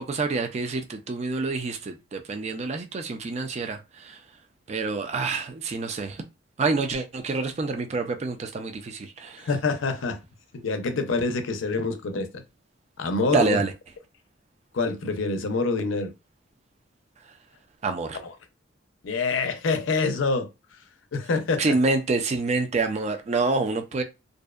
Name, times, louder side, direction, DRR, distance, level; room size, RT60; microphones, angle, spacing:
voice 1, 0.0-4.2 4.7-6.2 6.6-9.5 13.3-13.7 17.8-18.2 21.6-24.0, right 3 dB, 35° right, 0.3 m, -27 dB
voice 2, 9.4-10.2 10.5-12.4 13.0-13.6 14.7-16.1 18.1-18.3 19.0-20.5 21.1-21.8, left 3 dB, 85° left, 0.5 m, -26 dB
2.6 x 2.1 x 2.3 m
head